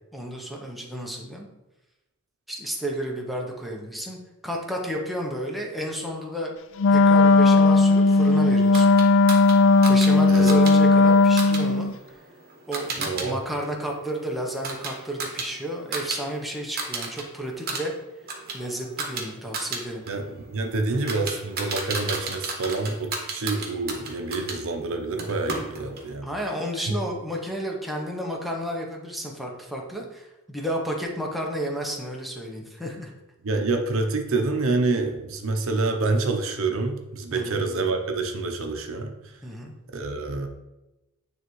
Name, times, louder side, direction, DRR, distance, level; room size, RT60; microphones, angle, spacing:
voice 1, 0.1-1.5 2.5-6.5 6.9-8.9 9.9-11.9 12.7-17.9 18.5-20.1 26.2-33.1 37.3-37.6 39.4-39.7, right 1 dB, ahead, -1 dB, 0.8 m, -32 dB
Wind instrument woodwind instrument, 6.8-11.9, left 3 dB, 60° left, 0.3 m, -17 dB
sound 1, 8.7-13.3 13.6-16.2 16.5-17.2 17.5-24.6 25.2-26.1, right 3 dB, 45° right, 1.1 m, -34 dB
voice 2, 13.0-13.4 20.1-26.3 26.9-27.0 33.4-39.1 39.9-40.5, right 3 dB, 65° right, 4 dB, 0.7 m, -27 dB
9.3 x 3.4 x 3.1 m, 0.99 s
head